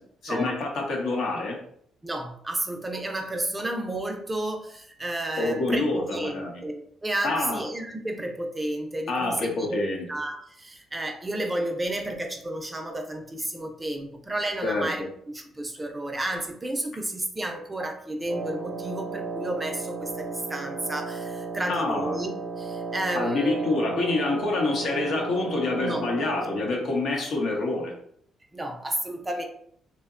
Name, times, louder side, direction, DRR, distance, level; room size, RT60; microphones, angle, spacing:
voice 1, 0.2-1.6 5.4-6.5 7.2-7.6 9.1-10.0 14.6-14.9 21.7-22.1 23.1-27.9, left 2 dB, 70° left, 0 dB, 0.8 m, -27 dB
voice 2, 2.0-9.8 10.1-15.0 15.3-23.8 24.9-25.1 25.8-26.0 28.5-29.4, right 1 dB, 20° right, 3 dB, 0.4 m, -32 dB
Wind instrument woodwind instrument, 18.2-26.8, right 4 dB, 70° right, 0.6 m, -34 dB
2.8 x 2.1 x 2.4 m, 0.65 s
cardioid pair, 90°, 0 cm